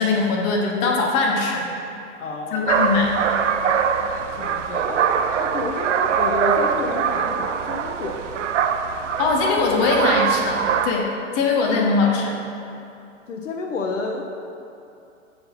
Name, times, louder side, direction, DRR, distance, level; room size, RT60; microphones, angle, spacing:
voice 1, 0.0-1.7 2.5-3.3 9.2-11.1 11.3-12.4, left 4 dB, 35° left, 0 dB, 1.0 m, -21 dB
voice 2, 2.2-3.2 4.3-5.0 5.4-8.4 13.3-14.2, left 2 dB, 70° left, 1 dB, 0.7 m, -30 dB
sound 1, 2.7-10.9, right 7 dB, 65° right, 0.5 m, -23 dB
7.6 x 4.2 x 4.1 m, 2.6 s
figure-of-eight pair, 100°, 39 cm